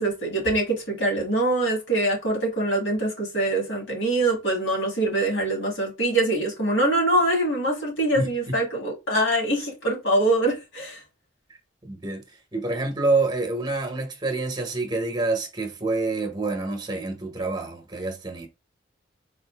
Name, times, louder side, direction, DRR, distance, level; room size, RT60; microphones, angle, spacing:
voice 1, 0.0-11.0, right 1 dB, 70° left, 1.8 m, -24 dB
voice 2, 8.1-8.5 11.8-18.5, right 3 dB, 20° right, 0.8 m, -27 dB
3.9 x 2.6 x 3.3 m
head